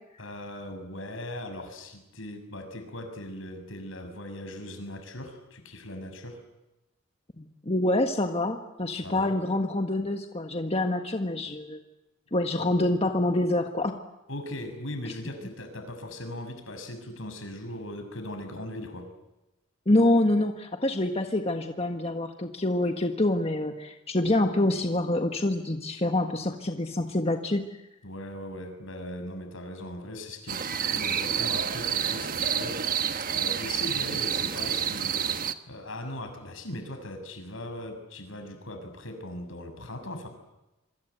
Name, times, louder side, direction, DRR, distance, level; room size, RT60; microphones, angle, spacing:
voice 1, 0.2-6.4 9.0-9.3 14.3-19.1 28.0-35.2 35.7-40.3, left 1 dB, 75° left, 7 dB, 6.2 m, -39 dB
voice 2, 7.4-11.8 12.3-14.0 19.9-27.7, left 1 dB, 30° left, 5 dB, 1.5 m, -26 dB
sound 1, 30.5-35.5, right 8 dB, 45° right, 1.3 m, -29 dB
27.0 x 24.5 x 8.1 m, 0.97 s
head